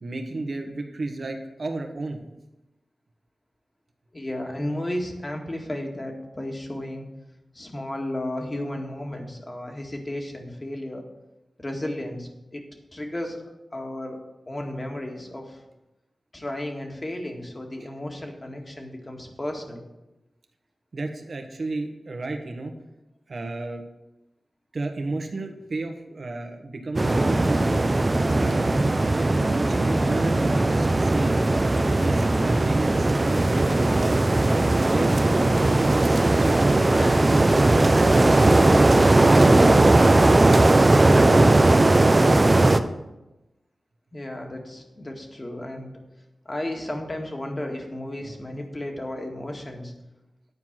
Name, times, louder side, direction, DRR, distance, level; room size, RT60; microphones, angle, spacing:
voice 1, 0.0-2.2 20.9-22.7 23.3-23.8 24.7-27.7 28.3-28.7 29.1-31.4 31.7-34.2 34.8-35.2 35.5-36.8 37.8-38.8 39.3-40.5 41.0-41.7 48.2-48.3, right 2 dB, 60° right, 4 dB, 1.4 m, -32 dB
voice 2, 4.1-7.1 7.5-11.0 11.6-12.6 12.9-13.4 13.7-14.2 14.5-15.6 16.3-19.8 44.1-45.9 46.5-49.9, left 1 dB, 35° left, 2 dB, 1.9 m, -33 dB
sound 1, 27.0-42.8, right 2 dB, 35° right, 0.6 m, -18 dB
sound 2, 36.6-37.3, left 2 dB, 80° left, 2.6 m, -38 dB
9.6 x 4.6 x 7.5 m, 0.97 s
cardioid pair, 45°, 0 cm